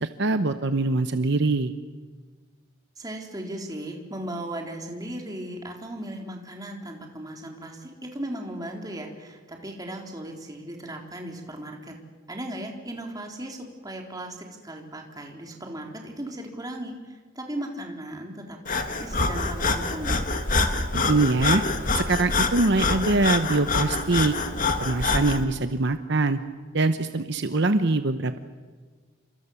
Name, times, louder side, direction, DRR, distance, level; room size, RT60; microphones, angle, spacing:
voice 1, 0.0-1.7 20.9-21.6 21.9-24.3 24.8-26.4 26.7-28.4, right 3 dB, 55° right, 9 dB, 0.9 m, -23 dB
voice 2, 3.0-11.9 12.3-20.3, right 1 dB, 20° right, 1 dB, 3.7 m, -37 dB
Breathing, 18.6-25.4, left 3 dB, 40° left, 1.9 m, -26 dB
29.5 x 26.0 x 7.2 m, 1.5 s
head